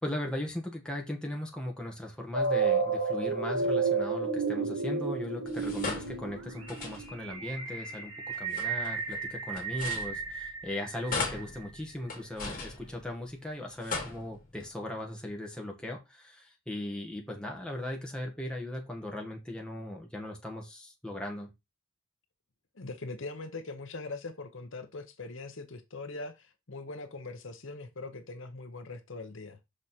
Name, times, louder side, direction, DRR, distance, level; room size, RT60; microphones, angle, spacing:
voice 1, 0.0-21.5, left 1 dB, 5° left, 1.7 m, -38 dB
sound 1, 2.3-11.3, right 4 dB, 80° right, 2.1 m, -32 dB
sound 2, 5.4-7.3 8.3-10.7 11.1-13.4 13.7-14.7, left 3 dB, 40° left, 2.4 m, -39 dB
voice 2, 22.7-29.6, left 3 dB, 60° left, 0.9 m, -41 dB
6.3 x 4.8 x 4.4 m
head